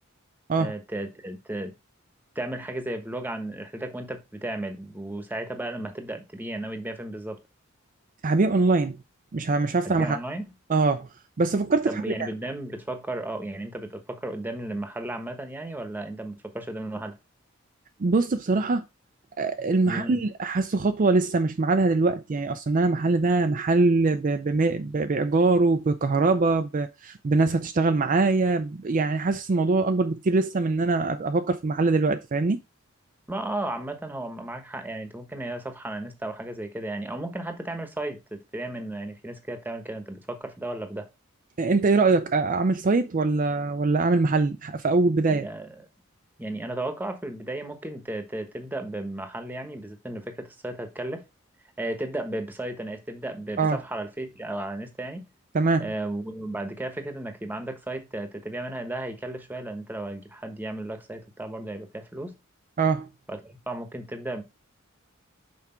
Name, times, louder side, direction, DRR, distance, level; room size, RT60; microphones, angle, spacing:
voice 1, 0.6-1.7 2.3-7.4 9.8-10.5 11.9-17.2 19.8-20.2 33.3-41.1 45.3-45.9 46.4-51.2 51.8-55.2 55.8-62.3 63.3-64.4, right 1 dB, 10° right, 1.1 m, -34 dB
voice 2, 8.2-9.0 9.3-10.2 10.7-11.1 11.4-12.0 18.0-18.8 19.4-32.6 41.6-45.5 53.6-53.8 55.5-55.9 62.8-63.1, right 3 dB, 40° right, 0.5 m, -23 dB
5.9 x 4.8 x 4.3 m
head